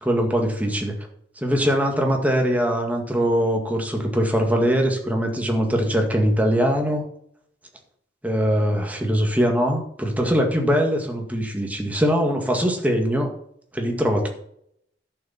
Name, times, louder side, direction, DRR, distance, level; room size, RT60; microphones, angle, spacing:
voice 1, 0.0-0.9 1.4-7.0 8.2-13.3 13.7-14.3, equal, 10° right, 2 dB, 1.9 m, -22 dB
11.0 x 6.9 x 5.8 m, 0.70 s
head